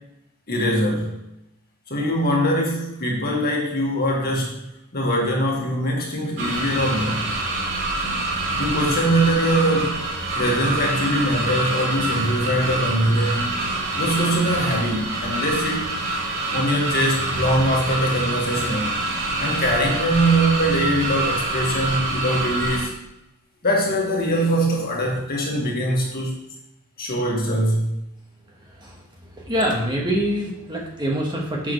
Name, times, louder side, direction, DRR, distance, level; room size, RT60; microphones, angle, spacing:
voice 1, 0.5-1.1 1.9-4.7 4.9-7.3 8.6-10.1 10.3-13.6 14.0-15.9 16.5-19.0 19.4-23.0 23.6-26.4 27.0-28.0, right 1 dB, 45° left, -2 dB, 1.9 m, -22 dB
sound 1, 6.4-22.9, right 2 dB, 60° right, 2.6 m, -26 dB
voice 2, 28.6-29.0 29.3-31.7, equal, 20° right, -2 dB, 1.5 m, -25 dB
9.7 x 6.6 x 3.3 m, 0.84 s
head